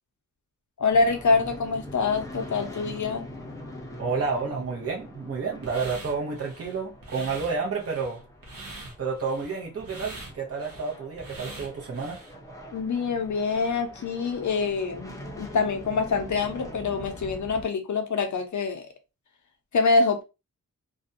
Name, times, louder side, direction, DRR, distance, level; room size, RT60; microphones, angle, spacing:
voice 1, 0.8-3.3 12.7-18.9 19.7-20.2, left 4 dB, 60° left, 0.6 m, -25 dB
sound 1, 0.9-17.6, left 1 dB, 10° left, 0.6 m, -43 dB
voice 2, 4.0-8.2 9.0-12.2, right 4 dB, 45° right, 0.7 m, -30 dB
sound 2, 5.6-12.3, right 2 dB, 80° right, 0.9 m, -43 dB
2.5 x 2.2 x 2.6 m
wide cardioid pair, 135°, 33 cm